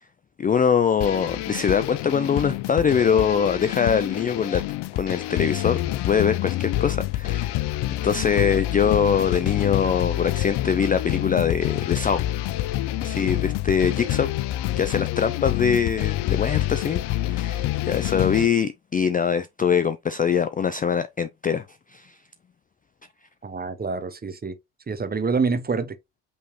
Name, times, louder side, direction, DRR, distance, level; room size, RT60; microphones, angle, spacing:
voice 1, 0.4-4.6 4.9-7.6 8.0-12.2 13.0-14.3 14.8-21.6 21.9-22.1, left 7 dB, 20° left, 0.3 m, -23 dB
sound 1, 1.0-18.5, left 15 dB, 65° left, 0.6 m, -27 dB
voice 2, 23.4-24.5 24.9-26.0, right 4 dB, 20° right, 0.8 m, -26 dB
5.5 x 3.1 x 3.0 m
supercardioid pair, 75°, 43 cm